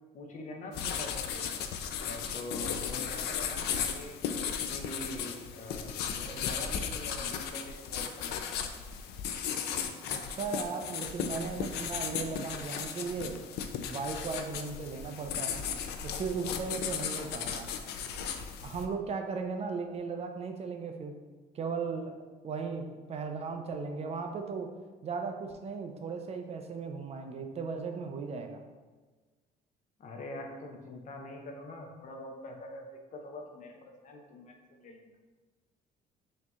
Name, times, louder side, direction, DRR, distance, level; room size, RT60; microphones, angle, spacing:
voice 1, 0.1-1.5 2.0-4.2 4.7-8.5 30.0-35.1, left 1 dB, 50° left, 2 dB, 0.8 m, -44 dB
sound 1, 0.7-18.8, left 7 dB, 75° left, 0.4 m, -36 dB
voice 2, 10.1-13.4 13.9-15.6 16.0-17.8 18.6-21.2 21.5-24.7 25.0-28.6, right 5 dB, 40° right, 5 dB, 0.4 m, -37 dB
6.3 x 2.8 x 2.3 m, 1.3 s
cardioid pair, 110°, 17 cm